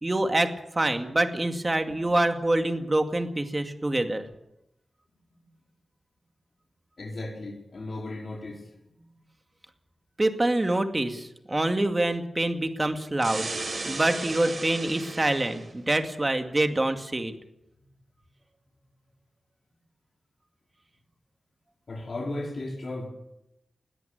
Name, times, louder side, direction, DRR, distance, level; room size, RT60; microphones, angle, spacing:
voice 1, 0.0-4.3 10.2-13.5 13.8-17.3, right 1 dB, 25° right, 6 dB, 2.1 m, -26 dB
voice 2, 7.0-8.6 8.9-9.0 21.9-23.1, left 2 dB, 55° left, 1 dB, 4.5 m, -35 dB
sound 1, 13.2-15.7, right 3 dB, 50° right, 4.2 m, -35 dB
20.5 x 13.5 x 9.2 m, 0.88 s
wide cardioid pair, 95°, 0 cm